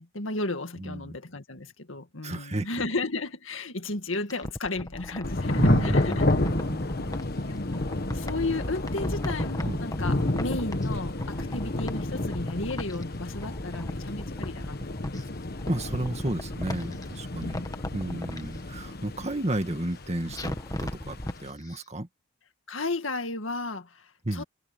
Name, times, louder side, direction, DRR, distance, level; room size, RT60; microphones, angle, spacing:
voice 1, 0.0-6.2 7.5-15.2 17.4-17.6 22.7-24.4, left 2 dB, 75° left, 2.0 m, -34 dB
voice 2, 0.8-1.2 2.2-2.7 5.6-7.1 9.7-9.8 15.7-17.6 17.9-22.1 24.2-24.4, right 1 dB, 35° right, 2.0 m, -32 dB
sound 1, 4.1-7.2 7.7-10.9 11.2-13.0 13.3-15.2 15.5-17.0 17.4-18.4 20.3-21.4 21.7-21.8, left 1 dB, 20° left, 1.5 m, -36 dB
Thunder / Rain, 5.2-21.5, left 2 dB, 50° left, 1.3 m, -30 dB
head